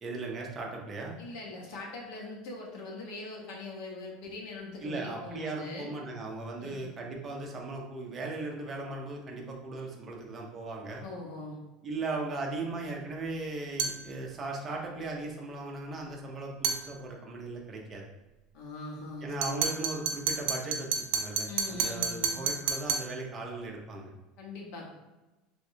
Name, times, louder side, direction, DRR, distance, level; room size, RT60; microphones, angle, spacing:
voice 1, 0.0-1.2 4.8-11.0 11.8-18.1 19.2-24.1, right 2 dB, 20° right, 0 dB, 0.6 m, -38 dB
voice 2, 1.2-5.9 6.6-6.9 11.0-11.6 18.5-19.8 21.5-22.5 24.4-24.9, left 3 dB, 65° left, -2 dB, 1.0 m, -42 dB
sound 1, 13.8-14.0 16.6-16.8 19.4-23.1, right 6 dB, 85° right, 0.4 m, -30 dB
3.4 x 3.1 x 2.7 m, 1.1 s
cardioid pair, 155°, 0 cm